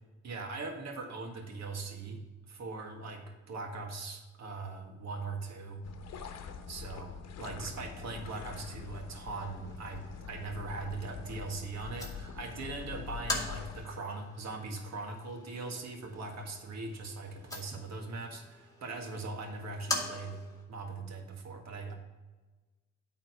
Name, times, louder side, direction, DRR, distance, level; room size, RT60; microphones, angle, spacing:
voice 1, 0.2-2.2 2.5-5.8 6.7-20.4 20.7-21.9, right 3 dB, 60° right, 4 dB, 1.7 m, -40 dB
sound 1, 5.8-13.8, left 7 dB, 60° left, 1.0 m, -44 dB
sound 2, 7.6-20.6, left 2 dB, 10° left, 2.2 m, -44 dB
9.0 x 4.0 x 6.2 m, 1.2 s
cardioid pair, 90°, 30 cm